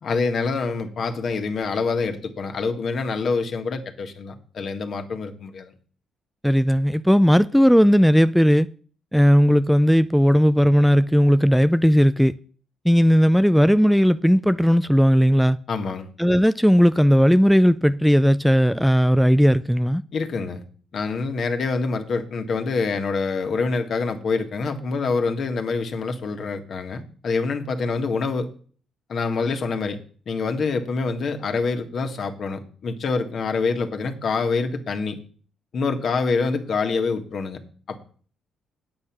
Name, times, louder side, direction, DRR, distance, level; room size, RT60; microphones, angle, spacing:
voice 1, 0.0-5.7 15.7-16.1 20.1-20.6 20.9-28.5 29.1-30.0 30.3-35.2 35.7-37.6 37.9-38.0, left 4 dB, 55° left, 1.6 m, -26 dB
voice 2, 6.4-8.7 9.1-12.3 12.8-15.6 16.2-20.0, equal, ahead, 0.4 m, -17 dB
8.7 x 8.5 x 6.0 m
cardioid pair, 90°, 0 cm